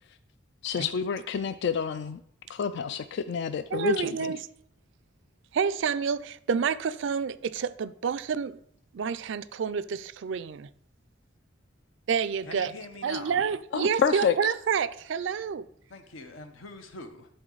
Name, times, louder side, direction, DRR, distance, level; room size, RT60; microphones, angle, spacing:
voice 1, 0.6-2.2 2.5-4.3 13.7-14.3, left 7 dB, 60° left, 0.3 m, -28 dB
voice 2, 3.7-4.4 5.5-8.6 8.9-10.7 12.1-12.7 13.0-15.7, right 6 dB, 65° right, 0.4 m, -28 dB
voice 3, 12.4-13.4 15.9-17.3, left 3 dB, 85° left, 1.0 m, -43 dB
11.0 x 4.1 x 3.9 m
head